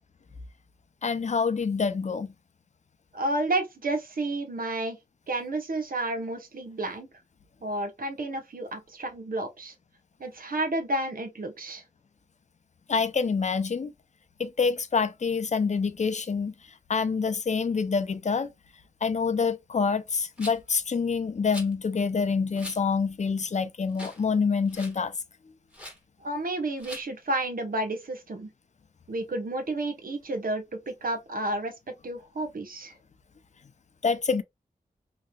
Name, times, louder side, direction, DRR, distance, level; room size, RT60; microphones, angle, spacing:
voice 1, 1.0-2.3 12.9-13.9 14.4-16.5 16.9-18.5 19.0-25.1 34.0-34.4, left 5 dB, 50° left, 0.5 m, -26 dB
voice 2, 3.1-5.0 5.3-7.1 7.6-9.7 10.2-11.8 26.2-28.5 29.1-32.9, right 2 dB, 65° right, 0.9 m, -31 dB
Rattle, 20.4-20.7 21.5-21.7 22.5-22.8 23.3-23.4 23.9-24.3 24.5-25.0 25.7-26.0 26.8-27.1, equal, 5° right, 1.5 m, -42 dB
3.0 x 2.7 x 2.3 m
cardioid pair, 55°, 16 cm